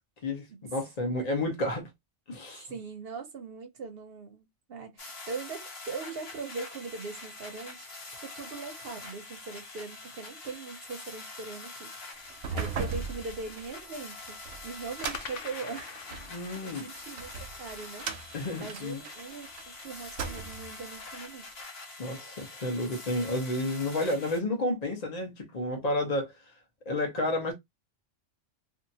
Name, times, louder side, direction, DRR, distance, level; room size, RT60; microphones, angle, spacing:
voice 1, 0.2-1.9 2.3-2.7 16.3-16.9 18.3-19.0 22.0-26.3 26.9-27.5, left 1 dB, 35° left, 1.0 m, -31 dB
voice 2, 2.7-7.9 8.2-16.0 16.3-16.4 16.6-17.3 17.6-18.1 18.5-21.5, right 4 dB, 60° right, 0.8 m, -41 dB
sound 1, 5.0-24.4, left 3 dB, 60° left, 1.2 m, -45 dB
sound 2, 7.3-9.2 15.0-19.3, left 6 dB, 90° left, 1.0 m, -47 dB
sound 3, 12.3-16.4 16.9-19.7 20.0-20.8, right 5 dB, 80° right, 0.9 m, -38 dB
2.8 x 2.4 x 2.7 m
omnidirectional pair, 1.2 m